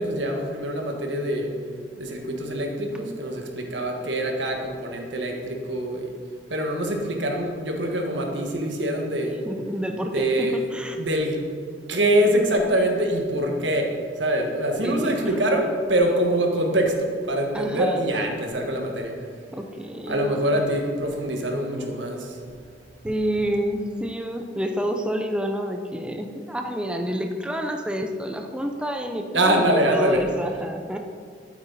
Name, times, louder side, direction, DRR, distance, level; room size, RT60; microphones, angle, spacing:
voice 1, 0.0-1.5 2.0-6.1 6.5-9.4 10.1-10.6 11.0-11.4 11.9-19.3 20.1-22.4 29.3-30.2, right 1 dB, 85° right, 2 dB, 1.7 m, -24 dB
voice 2, 9.5-11.0 14.8-15.3 17.5-18.0 19.5-20.4 21.8-21.9 23.0-31.0, equal, 5° right, 4 dB, 0.6 m, -29 dB
12.5 x 8.8 x 4.1 m, 2.1 s
head